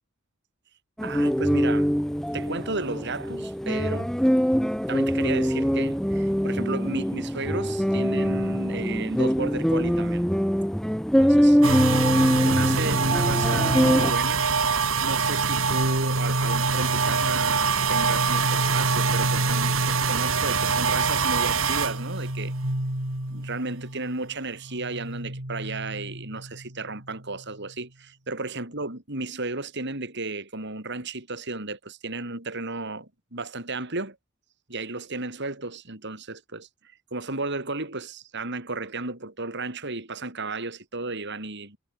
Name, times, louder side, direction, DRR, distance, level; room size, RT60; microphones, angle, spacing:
sound 1, 1.0-14.1, equal, ahead, 6.7 m, -23 dB
voice 1, 1.0-1.9 2.3-4.1 4.6-10.3 11.2-11.8 12.2-14.5 15.0-22.5 23.3-34.2 34.7-36.7 37.1-41.8, right 3 dB, 60° right, 6.4 m, -33 dB
sound 2, 11.6-24.3 24.6-27.1, right 4 dB, 80° right, 4.2 m, -25 dB
head